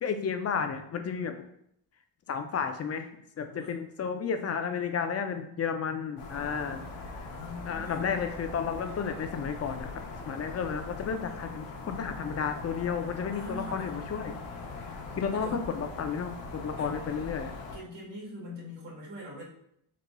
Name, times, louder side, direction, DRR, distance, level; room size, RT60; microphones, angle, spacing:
voice 1, 0.0-1.4 2.3-3.1 3.4-7.2 7.7-14.4 15.1-17.5, left 6 dB, 35° left, 7 dB, 0.4 m, -32 dB
voice 2, 3.5-3.8 7.3-8.1 13.3-14.0 15.3-15.6 16.7-16.9 17.7-19.4, left 1 dB, 60° right, -4 dB, 1.3 m, -42 dB
sound 1, 6.2-17.8, left 3 dB, 90° left, 0.7 m, -41 dB
4.0 x 2.9 x 2.2 m, 0.72 s
cardioid pair, 70°, 49 cm